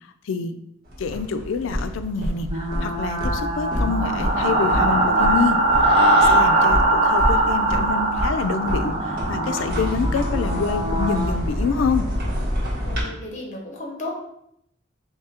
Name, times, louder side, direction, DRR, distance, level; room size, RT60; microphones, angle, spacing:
voice 1, 0.3-0.6 1.0-2.5 2.8-5.6 6.1-12.1, left 5 dB, 90° left, 10 dB, 0.4 m, -26 dB
sound 1, 0.9-13.0, equal, 55° right, 1.5 m, -28 dB
sound 2, 2.4-11.3, right 2 dB, 30° right, 0.9 m, -21 dB
voice 2, 12.8-14.1, left 2 dB, 40° left, 0 dB, 0.9 m, -34 dB
3.7 x 2.8 x 4.2 m, 0.76 s
head